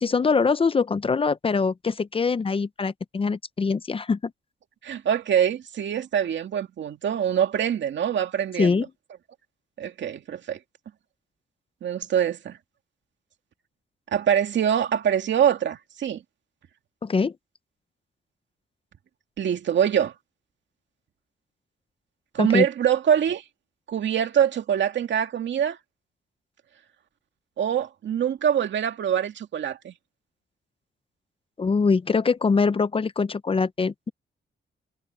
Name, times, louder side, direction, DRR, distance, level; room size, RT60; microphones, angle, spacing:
voice 1, 0.0-4.3 8.6-8.8 17.0-17.3 22.4-22.7 31.6-34.1, left 4 dB, 30° left, 0.6 m, -23 dB
voice 2, 4.8-8.8 9.8-10.6 11.8-12.6 14.1-16.2 19.4-20.1 22.3-23.4 23.9-25.8 27.6-29.9, right 9 dB, 75° right, 2.3 m, -24 dB
cardioid pair, 120°, 19 cm